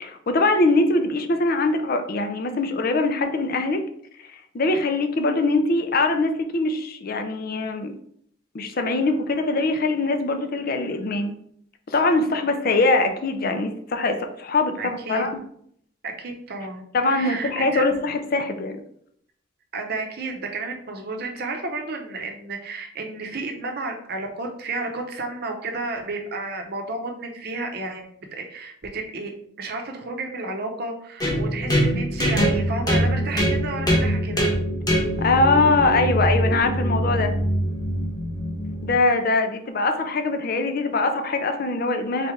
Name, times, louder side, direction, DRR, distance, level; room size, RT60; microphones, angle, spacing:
voice 1, 0.0-3.8 4.5-7.9 8.5-11.3 11.9-15.4 16.9-18.8 35.2-37.4 38.8-42.3, left 2 dB, 45° left, 6 dB, 0.5 m, -22 dB
voice 2, 14.8-15.3 16.0-16.8 17.1-17.8 19.7-28.1 28.3-29.3 29.6-34.5, right 3 dB, 50° right, 2 dB, 0.7 m, -32 dB
sound 1, 31.2-39.0, equal, 20° left, 1.0 m, -23 dB
4.0 x 3.2 x 3.6 m, 0.66 s
head